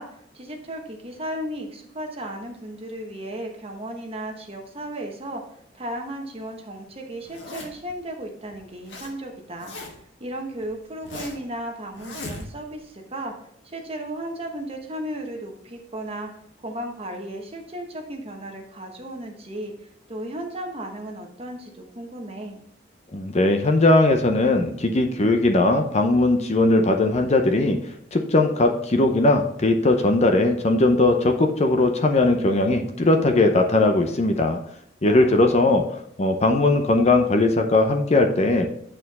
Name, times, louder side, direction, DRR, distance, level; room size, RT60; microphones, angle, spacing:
voice 1, 0.0-9.7 10.2-13.3 13.6-16.3 16.6-22.6 35.0-35.7, right 1 dB, 30° right, 2 dB, 1.1 m, -35 dB
Zipper (clothing), 7.2-7.9 8.5-9.1 9.4-10.1 10.6-11.5 11.9-12.8, left 2 dB, 70° left, 1.5 m, -38 dB
voice 2, 23.1-27.8 28.1-34.6 35.0-35.8 36.2-38.7, left 2 dB, 35° left, 5 dB, 0.6 m, -19 dB
8.8 x 4.5 x 4.1 m, 0.70 s
head